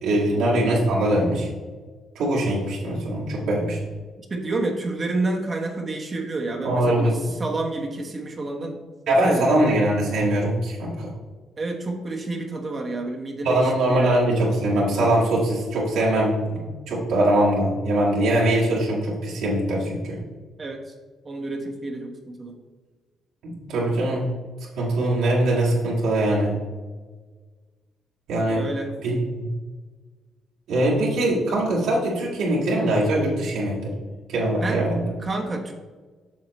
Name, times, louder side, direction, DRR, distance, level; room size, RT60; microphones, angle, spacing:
voice 1, 0.0-1.5 2.2-3.8 6.6-7.3 9.1-11.1 13.4-20.2 23.4-24.3 24.8-26.5 28.3-28.7 29.0-29.5 30.7-33.9 34.3-35.0, right 1 dB, 85° right, -6 dB, 2.2 m, -22 dB
voice 2, 4.3-8.8 9.1-9.4 11.6-14.2 20.6-20.9 21.2-22.5 28.5-28.9 34.5-35.7, right 2 dB, 35° right, 1 dB, 1.1 m, -29 dB
7.5 x 6.4 x 3.1 m, 1.4 s
cardioid pair, 90°, 0 cm